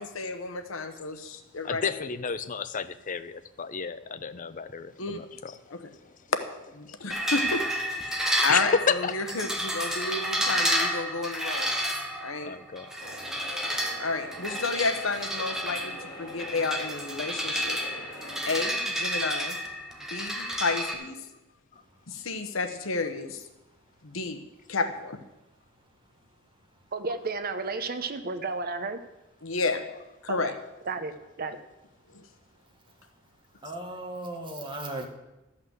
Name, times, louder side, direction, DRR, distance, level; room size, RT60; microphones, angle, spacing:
voice 1, 0.0-2.1 5.0-5.2 5.7-5.8 6.7-7.6 8.0-11.7 12.2-12.5 14.0-17.8 18.5-19.6 20.1-21.2 22.1-23.4 24.0-24.4 24.7-25.2 29.4-29.8 30.2-30.5 32.1-32.2, left 3 dB, 70° left, 8 dB, 1.0 m, -31 dB
voice 2, 1.6-5.8 8.5-9.1 12.4-12.9, left 5 dB, 40° left, 12 dB, 0.6 m, -31 dB
sound 1, 7.1-20.9, equal, 5° right, 1.3 m, -31 dB
sound 2, 13.0-18.7, left 1 dB, 25° left, 3.0 m, -44 dB
voice 3, 26.9-29.0 30.3-30.5 30.9-31.1 31.4-31.6, right 3 dB, 45° right, 10 dB, 0.9 m, -32 dB
voice 4, 32.7-33.3 33.6-35.1, right 1 dB, 25° right, 1 dB, 1.8 m, -39 dB
13.0 x 5.8 x 8.0 m, 0.98 s
head